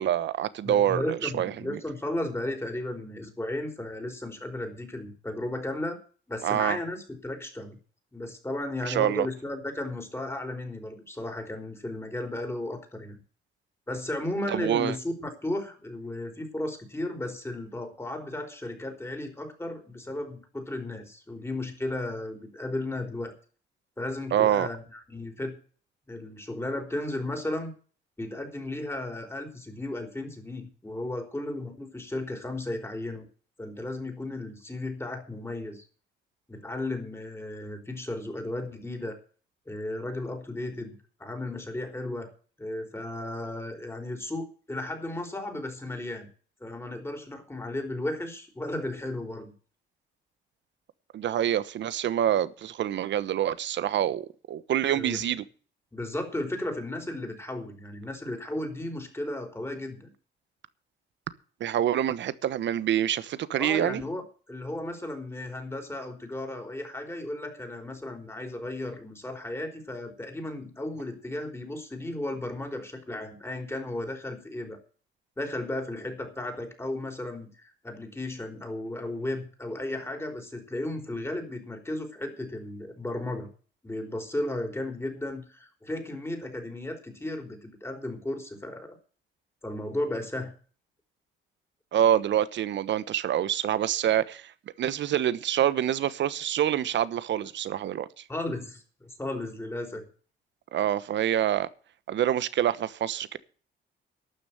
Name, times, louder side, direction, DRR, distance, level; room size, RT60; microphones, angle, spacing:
voice 1, 0.0-1.8 6.4-6.8 8.8-9.3 14.5-14.9 24.3-24.7 51.1-55.4 61.6-64.0 91.9-94.5 94.8-98.1 100.7-101.7 102.1-103.4, right 11 dB, 65° right, 1.1 m, -26 dB
voice 2, 0.6-6.0 6.3-7.8 8.1-13.2 13.9-23.3 24.0-25.6 26.1-27.7 28.2-33.2 33.6-35.8 36.5-39.2 39.7-42.3 42.6-46.3 46.6-49.5 54.9-55.2 55.9-60.1 63.5-64.2 64.5-74.8 75.4-83.5 83.8-89.0 89.6-90.5 98.3-100.1, left 1 dB, 10° left, 4.4 m, -34 dB
12.5 x 6.9 x 9.2 m
cardioid pair, 90°, 20 cm